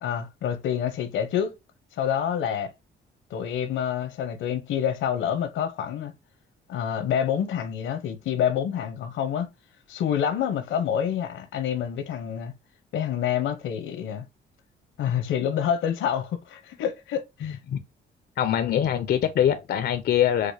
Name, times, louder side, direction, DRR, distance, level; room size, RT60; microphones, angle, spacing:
voice 1, 0.0-1.5 2.0-2.7 3.3-6.1 6.7-9.5 9.9-12.5 12.9-14.2 15.0-17.6, left 9 dB, 80° left, 0.8 m, -27 dB
voice 2, 17.4-17.8 18.4-20.5, left 10 dB, 55° left, 0.5 m, -23 dB
4.8 x 2.1 x 2.7 m
cardioid pair, 90°, 20 cm